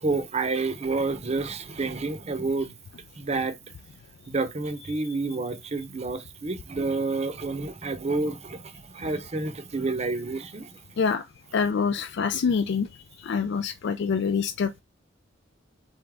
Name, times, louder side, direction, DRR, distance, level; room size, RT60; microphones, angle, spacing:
voice 1, 0.0-2.8 3.2-3.6 4.3-8.6 8.9-10.7, right 3 dB, 35° right, 0.6 m, -29 dB
voice 2, 11.5-12.9 13.2-14.8, left 6 dB, 60° left, 0.3 m, -25 dB
3.9 x 3.6 x 3.3 m
head